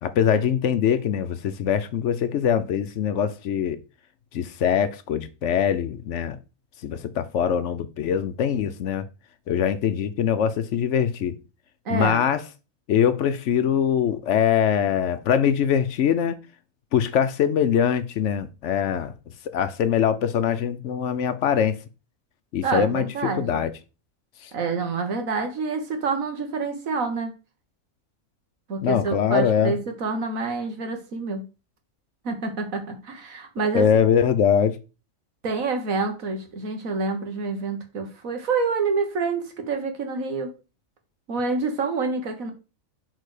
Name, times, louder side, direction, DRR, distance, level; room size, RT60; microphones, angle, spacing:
voice 1, 0.0-3.8 4.3-6.4 6.8-9.1 9.5-11.3 11.9-12.4 12.9-16.4 16.9-19.1 19.5-21.8 22.5-23.7 24.4-24.5 28.8-29.7 33.6-34.8, left 8 dB, 65° left, 0.9 m, -23 dB
voice 2, 11.8-12.3 22.6-23.5 24.5-27.3 28.7-31.4 32.2-33.9 35.4-40.5 41.3-42.5, right 4 dB, 80° right, 1.7 m, -27 dB
6.4 x 4.1 x 4.9 m
omnidirectional pair, 1.4 m